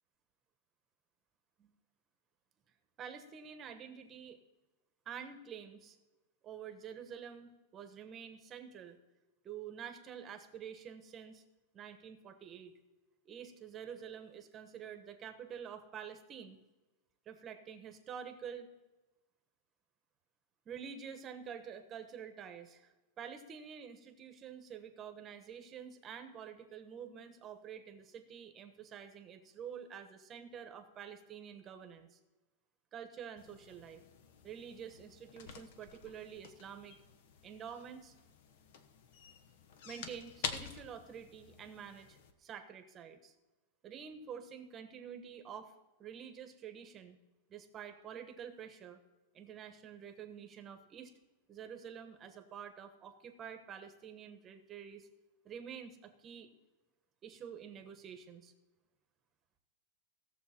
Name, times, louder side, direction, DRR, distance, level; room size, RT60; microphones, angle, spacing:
voice 1, 3.0-4.4 5.0-6.0 6.4-9.0 9.4-11.4 11.7-12.7 13.2-16.6 17.3-18.7 20.6-32.2 32.9-34.0 34.4-37.0 37.4-38.1 39.8-43.3 43.8-45.7 46.0-47.2 47.5-49.0 49.3-51.1 51.5-55.1 55.4-56.5 57.2-58.5, right 7 dB, 25° right, 8 dB, 1.1 m, -48 dB
sound 1, 33.4-42.3, left 6 dB, 60° left, 1.1 m, -48 dB
17.0 x 6.9 x 4.4 m, 1.1 s
supercardioid pair, 155°, 0 cm